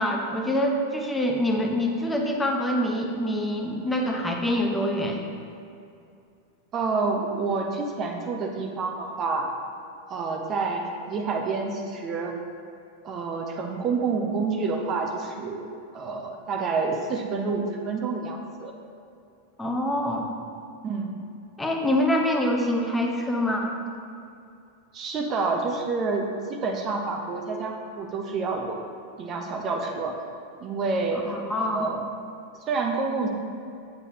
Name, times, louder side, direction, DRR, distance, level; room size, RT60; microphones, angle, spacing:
voice 1, 0.0-5.2 19.6-20.3 21.6-23.8 31.2-31.9, left 1 dB, 10° left, 1 dB, 0.8 m, -25 dB
voice 2, 6.7-9.5 10.1-12.3 13.0-15.7 15.9-18.7 20.8-21.1 24.9-28.8 29.2-30.2 30.6-32.0 32.7-33.3, right 4 dB, 30° right, 2 dB, 0.8 m, -28 dB
8.2 x 8.0 x 2.9 m, 2.5 s
figure-of-eight pair, 90°, 0 cm